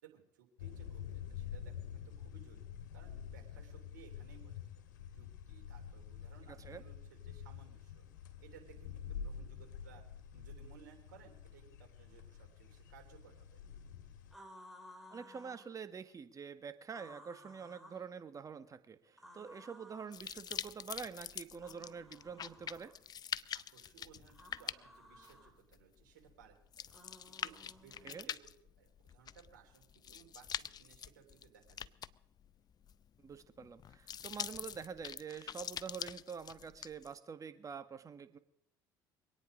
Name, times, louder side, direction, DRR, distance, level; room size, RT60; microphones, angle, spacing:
voice 1, 0.0-4.8 5.1-8.0 8.4-10.0 10.3-13.5 23.5-26.9 27.3-28.4 28.8-31.9, right 9 dB, 80° right, 1 dB, 3.2 m, -61 dB
sound 1, 0.6-14.3, left 8 dB, 80° left, 1.6 m, -48 dB
sound 2, 14.3-15.7 16.9-18.1 19.2-20.2 21.6-23.0 24.3-25.5 26.9-28.2, equal, ahead, 4.4 m, -57 dB
voice 2, 15.1-22.9 28.0-28.3 33.2-38.4, right 6 dB, 35° right, 9 dB, 1.6 m, -46 dB
sound 3, 20.1-37.1, left 9 dB, 40° left, 0.6 m, -45 dB
25.0 x 9.4 x 5.0 m, 0.72 s
hypercardioid pair, 65°, 10 cm